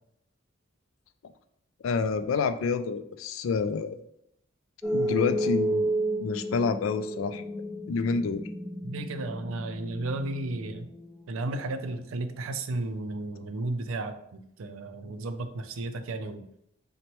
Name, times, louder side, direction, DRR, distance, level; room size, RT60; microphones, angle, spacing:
voice 1, 1.8-4.0 4.9-5.9 6.2-7.4 7.9-8.4, left 5 dB, 80° left, 10 dB, 0.3 m, -28 dB
sound 1, 4.8-11.8, right 1 dB, 5° left, 0.5 m, -32 dB
voice 2, 8.8-10.9 11.3-16.4, right 2 dB, 85° right, 9 dB, 0.4 m, -34 dB
5.8 x 2.2 x 3.0 m, 0.74 s
head